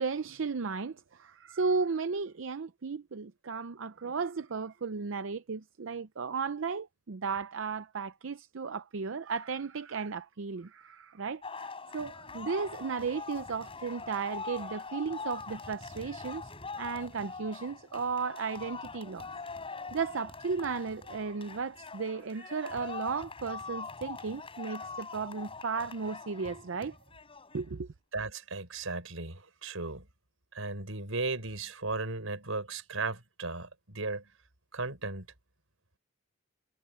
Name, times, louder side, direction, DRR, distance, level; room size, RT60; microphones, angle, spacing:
voice 1, 0.0-16.4 16.8-19.3 19.9-26.9 27.5-27.9, right 5 dB, 65° right, 0.6 m, -35 dB
sound 1, 11.4-27.7, left 4 dB, 30° left, 4.7 m, -43 dB
voice 2, 28.1-30.0 30.5-33.7 33.9-34.2 34.7-35.2, right 3 dB, 90° right, 4.8 m, -35 dB
head